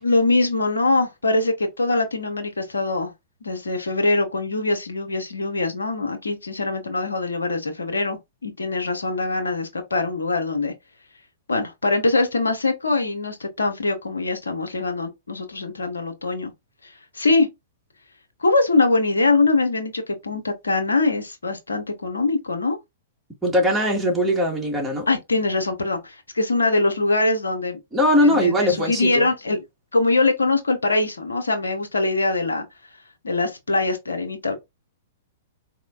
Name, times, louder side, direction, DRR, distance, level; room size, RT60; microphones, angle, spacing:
voice 1, 0.0-3.1 3.4-10.7 11.5-16.5 17.1-17.5 18.4-22.8 25.1-27.8 28.2-29.6 29.9-32.6 33.2-34.5, left 3 dB, 85° left, 0.9 m, -23 dB
voice 2, 23.4-25.1 27.9-29.2, equal, 5° right, 1.7 m, -20 dB
4.1 x 3.0 x 2.4 m
hypercardioid pair, 115°, 0 cm